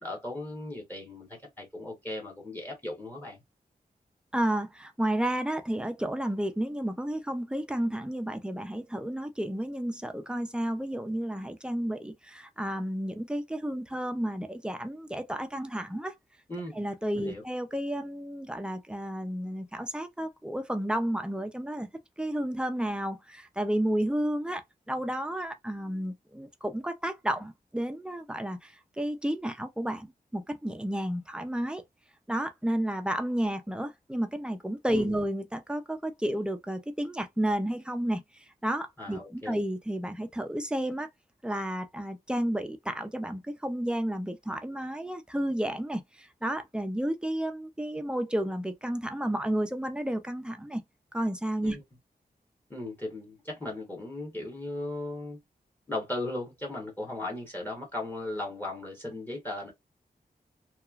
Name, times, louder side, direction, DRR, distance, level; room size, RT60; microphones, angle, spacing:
voice 1, 0.0-3.4 16.5-16.8 17.2-17.4 34.9-35.2 39.0-39.6 51.6-51.8 52.7-55.4 55.9-59.7, left 2 dB, 10° left, 1.0 m, -37 dB
voice 2, 4.3-16.1 16.7-21.9 22.2-30.1 30.3-31.8 32.3-38.2 38.6-41.1 41.4-50.8 51.1-51.8, right 1 dB, 5° right, 0.4 m, -31 dB
3.0 x 2.3 x 2.3 m
wide cardioid pair, 115°, 16 cm